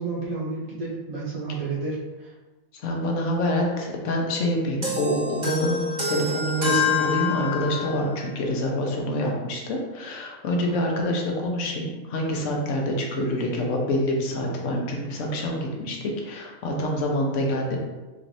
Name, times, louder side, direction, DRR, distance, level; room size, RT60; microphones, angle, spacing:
voice 1, 0.0-2.3, right 3 dB, 55° right, -5 dB, 0.4 m, -31 dB
voice 2, 2.8-5.8 6.1-17.8, left 1 dB, 65° left, 0 dB, 1.0 m, -26 dB
sound 1, 4.8-8.0, left 4 dB, 35° right, 0.9 m, -26 dB
4.5 x 3.1 x 2.6 m, 1.2 s
omnidirectional pair, 1.4 m